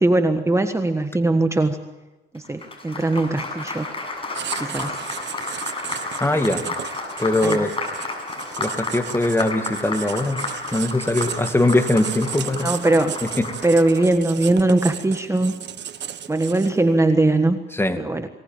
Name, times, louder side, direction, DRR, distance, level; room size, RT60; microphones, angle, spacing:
voice 1, 0.0-1.8 2.3-3.9 4.6-4.9 6.2-6.4 7.4-7.6 12.6-13.2 13.6-15.5 16.3-17.6 18.0-18.3, right 2 dB, 15° right, 8 dB, 1.5 m, -20 dB
Applause, 2.3-14.0, left 3 dB, 25° left, 7.6 m, -32 dB
Writing, 4.3-16.9, right 9 dB, 65° right, 1.5 m, -35 dB
voice 2, 6.2-6.6 7.2-7.7 8.6-10.4 10.7-12.7 13.2-13.5 17.7-18.0, left 1 dB, 10° left, 7 dB, 2.3 m, -21 dB
23.5 x 19.0 x 9.1 m, 1.1 s
cardioid pair, 90°, 20 cm